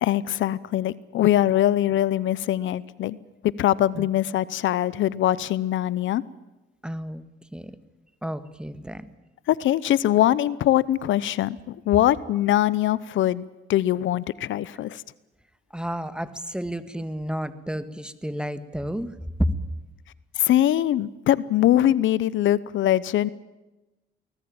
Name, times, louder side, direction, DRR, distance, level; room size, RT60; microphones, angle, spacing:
voice 1, 0.0-3.2 3.4-6.2 9.5-15.0 20.4-23.3, left 13 dB, 75° left, 19 dB, 0.8 m, -22 dB
voice 2, 6.8-7.7 8.2-9.0 15.7-19.5, equal, 5° right, 12 dB, 1.7 m, -31 dB
24.5 x 19.0 x 8.8 m, 1.1 s
cardioid pair, 90°, 20 cm